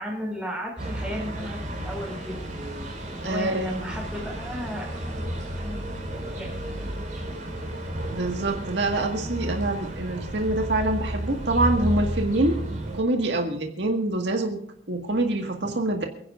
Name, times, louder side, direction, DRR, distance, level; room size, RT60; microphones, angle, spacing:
voice 1, 0.0-2.4 3.1-5.9 6.1-6.8, equal, 5° right, -2 dB, 5.4 m, -35 dB
sound 1, 0.8-13.0, right 1 dB, 45° right, 4.5 m, -32 dB
voice 2, 3.2-3.9 8.1-12.7 12.9-14.6 14.9-16.1, right 2 dB, 70° right, 3 dB, 1.9 m, -25 dB
28.5 x 10.5 x 2.6 m, 0.67 s
head